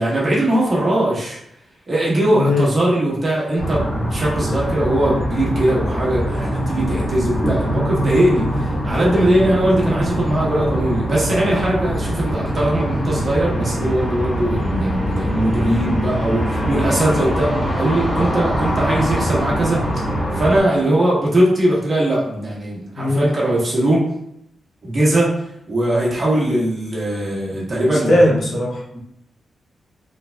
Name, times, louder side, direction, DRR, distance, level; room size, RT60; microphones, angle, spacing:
voice 1, 0.0-1.4 1.9-19.8 20.3-24.0 24.8-25.3 25.7-28.2, right 1 dB, 35° right, -6 dB, 1.1 m, -20 dB
voice 2, 2.3-2.7 23.0-23.3 27.9-29.0, left 1 dB, 55° left, -3 dB, 0.7 m, -18 dB
sound 1, 3.6-20.6, equal, 20° left, 1.4 m, -23 dB
3.3 x 3.2 x 2.3 m, 0.76 s
wide cardioid pair, 140°, 0 cm